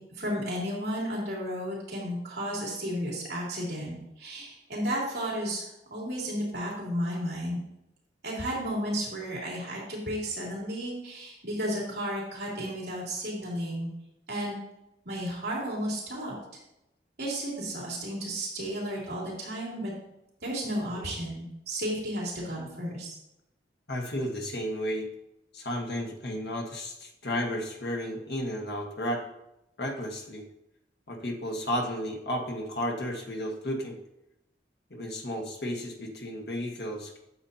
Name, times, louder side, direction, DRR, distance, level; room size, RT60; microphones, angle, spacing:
voice 1, 0.1-7.6 8.2-13.9 14.3-14.6 15.0-16.3 17.2-19.9 20.4-23.1, equal, 65° right, -4 dB, 2.9 m, -33 dB
voice 2, 23.9-25.1 25.5-29.2 29.8-30.4 31.1-34.0 34.9-37.2, equal, 65° left, 1 dB, 1.5 m, -33 dB
9.5 x 7.1 x 2.8 m, 0.88 s
head